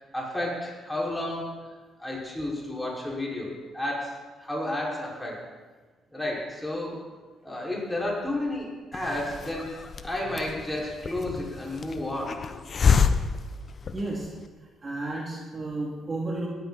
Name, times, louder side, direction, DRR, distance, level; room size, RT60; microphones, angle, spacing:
voice 1, 0.1-1.5 2.0-5.4 6.1-7.0 7.4-12.4, left 1 dB, 5° left, -4 dB, 5.3 m, -32 dB
Hiss, 8.9-14.4, left 6 dB, 45° left, 0.9 m, -28 dB
voice 2, 13.9-14.3 14.8-16.5, right 2 dB, 35° right, -2 dB, 2.7 m, -32 dB
17.5 x 12.5 x 4.2 m, 1.3 s
cardioid pair, 90°, 0 cm